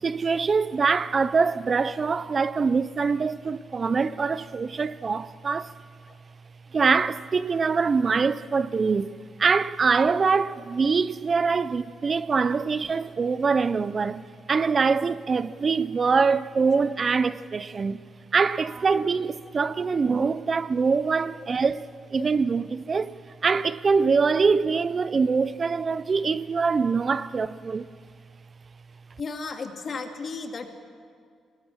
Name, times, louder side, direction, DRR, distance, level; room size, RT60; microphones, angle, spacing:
voice 1, 0.0-5.7 6.7-14.2 14.5-18.0 18.3-23.1 23.4-27.9, right 5 dB, 35° right, 0.5 m, -24 dB
voice 2, 29.2-30.7, left 4 dB, 40° left, 2.4 m, -35 dB
25.5 x 20.0 x 7.4 m
cardioid pair, 125°, 0 cm